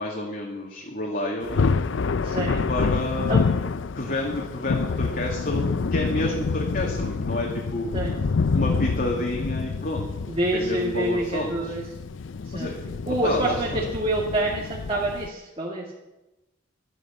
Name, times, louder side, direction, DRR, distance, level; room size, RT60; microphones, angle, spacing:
voice 1, 0.0-1.7 2.7-3.6 4.0-7.9 8.5-10.1 10.5-11.8 12.5-13.9, left 1 dB, 45° left, 0 dB, 2.1 m, -29 dB
Thunder, 1.4-15.3, left 4 dB, 70° left, 0.5 m, -27 dB
voice 2, 2.2-2.6 3.3-3.4 7.9-8.2 10.3-11.8 12.5-12.7 13.1-15.8, right 1 dB, 30° right, -3 dB, 2.2 m, -27 dB
12.5 x 11.0 x 7.2 m, 0.99 s
head